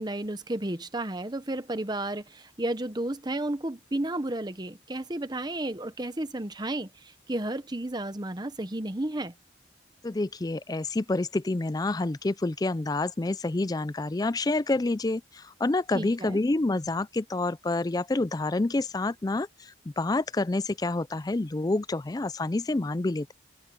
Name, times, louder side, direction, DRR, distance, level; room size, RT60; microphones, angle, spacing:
voice 1, 0.0-9.3 15.9-16.4, right 1 dB, 20° right, 0.9 m, -32 dB
voice 2, 10.0-23.3, left 2 dB, 20° left, 0.4 m, -28 dB
head